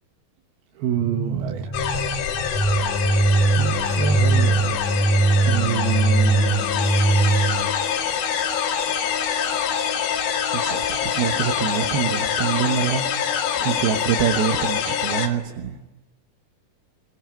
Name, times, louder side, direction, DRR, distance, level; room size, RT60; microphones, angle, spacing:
voice 1, 0.8-1.7 3.6-4.9 5.4-6.7 10.5-13.1 13.6-15.8, right 8 dB, 90° right, 2 dB, 3.3 m, -26 dB
sound 1, 1.0-7.7, right 3 dB, 5° left, 2.4 m, -21 dB
sound 2, 1.7-15.3, left 8 dB, 75° left, 3.8 m, -25 dB
25.0 x 21.5 x 9.2 m, 1.0 s
omnidirectional pair, 4.3 m